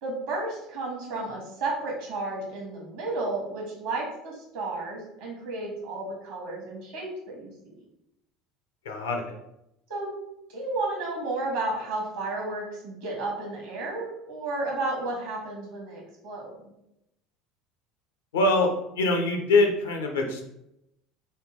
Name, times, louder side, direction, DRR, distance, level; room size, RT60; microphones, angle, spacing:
voice 1, 0.0-7.5 9.9-10.1 10.5-16.7, right 2 dB, 60° right, -1 dB, 1.2 m, -32 dB
voice 2, 8.8-9.3 18.3-18.7 19.0-20.4, left 2 dB, 70° left, 3 dB, 0.6 m, -23 dB
4.2 x 2.2 x 3.3 m, 0.83 s
figure-of-eight pair, 70°, 0 cm